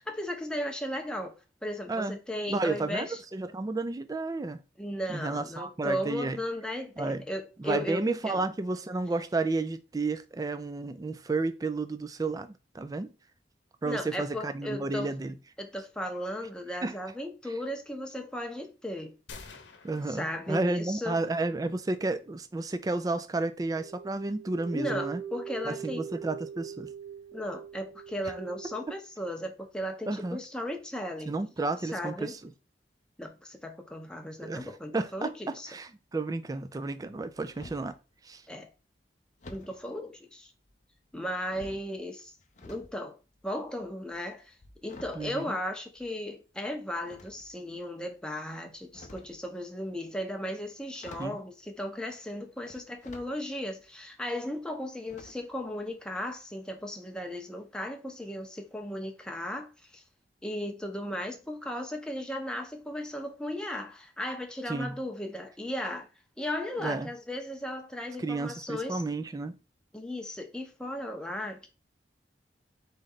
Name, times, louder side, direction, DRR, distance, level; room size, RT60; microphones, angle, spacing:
voice 1, 0.0-1.4 1.6-3.2 4.8-8.4 13.8-15.1 15.6-19.1 20.1-21.2 24.7-26.0 27.3-31.3 31.9-32.4 33.2-35.7 38.5-38.7 39.5-40.5 41.1-42.3 42.6-43.2 43.4-44.5 44.8-60.0 60.4-66.1 66.4-69.0 69.9-71.7, left 1 dB, 5° left, 0.7 m, -36 dB
voice 2, 2.5-4.6 5.1-6.4 7.0-7.2 7.6-13.1 13.8-15.4 16.8-16.9 19.8-25.2 25.7-26.9 30.1-30.4 31.3-32.5 34.4-37.9 38.2-38.4 45.2-45.5 51.2-51.4 64.7-65.0 66.8-67.1 68.2-69.5, right 3 dB, 20° right, 0.3 m, -32 dB
sound 1, 19.3-21.2, left 4 dB, 80° left, 0.8 m, -49 dB
sound 2, 23.8-28.9, right 9 dB, 50° right, 1.1 m, -41 dB
sound 3, 37.1-38.0 39.4-39.8 40.7-41.1 41.5-42.9 43.2-46.3 47.0-47.8 48.7-49.4 50.6-50.7 50.9-51.5 52.6-53.3 53.8-53.9 55.1-55.6 55.9-56.0 56.4-56.5, left 2 dB, 40° left, 0.6 m, -50 dB
4.1 x 3.3 x 3.8 m
head